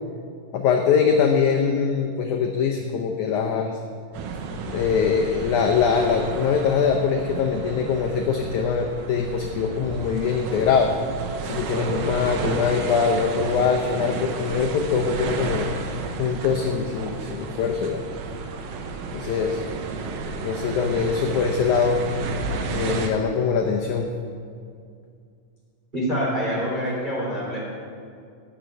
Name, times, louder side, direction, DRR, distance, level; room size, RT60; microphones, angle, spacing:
voice 1, 0.5-3.7 4.6-10.9 11.4-15.7 16.2-18.0 19.1-19.6 20.4-22.0 22.7-24.1, left 6 dB, 75° left, 2 dB, 1.9 m, -23 dB
sound 1, 4.1-23.1, right 4 dB, 90° right, 2.8 m, -32 dB
voice 2, 25.9-27.6, equal, 15° right, -5 dB, 3.0 m, -26 dB
13.0 x 6.8 x 8.9 m, 2.3 s
omnidirectional pair, 4.2 m